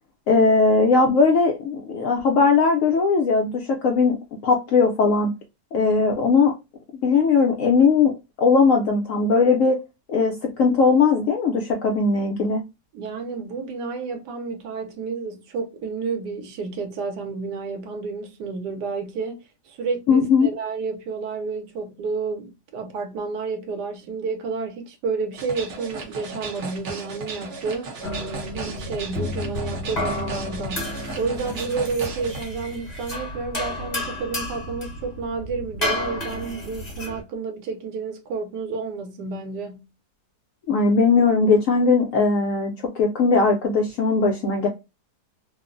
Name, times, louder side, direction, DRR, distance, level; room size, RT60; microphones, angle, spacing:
voice 1, 0.3-4.2 4.4-5.3 5.7-6.5 7.0-8.1 8.4-9.8 10.1-12.6 20.1-20.5 40.7-42.7 43.0-44.7, left 4 dB, 70° left, 0.8 m, -19 dB
voice 2, 12.9-27.9 28.5-39.8, right 4 dB, 85° right, 1.2 m, -30 dB
sound 1, 25.3-32.4, right 3 dB, 55° right, 0.9 m, -36 dB
sound 2, 28.0-37.2, left 1 dB, 30° left, 1.2 m, -31 dB
2.9 x 2.0 x 2.4 m
omnidirectional pair, 1.7 m